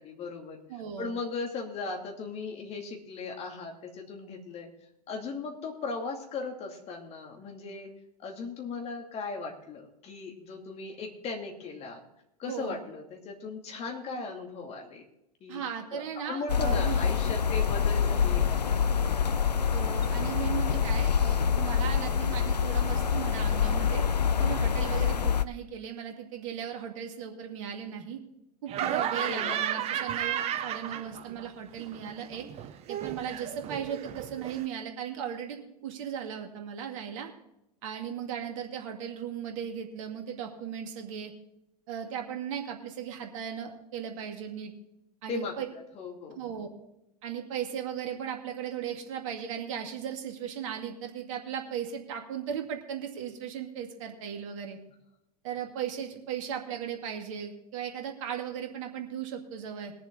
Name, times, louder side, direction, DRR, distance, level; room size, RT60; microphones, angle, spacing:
voice 1, 0.0-0.6 1.0-4.7 5.1-7.9 8.2-12.0 12.4-15.1 15.4-19.2 29.2-29.6 45.3-45.6 45.9-46.4, left 4 dB, 30° left, 2 dB, 2.5 m, -38 dB
voice 2, 0.7-1.2 12.5-12.8 15.5-17.0 19.7-24.0 24.4-28.2 28.6-32.4 32.9-37.3 37.8-41.3 41.9-44.7 45.2-45.7 46.4-46.7 47.2-54.8 55.4-59.9, right 8 dB, 50° right, 4 dB, 2.1 m, -37 dB
sound 1, 16.5-25.4, left 7 dB, 85° left, 0.5 m, -26 dB
Laughter, 28.7-31.5 31.7-34.7, right 10 dB, 30° right, 0.9 m, -33 dB
21.5 x 7.3 x 3.9 m, 0.83 s
figure-of-eight pair, 90°, 21 cm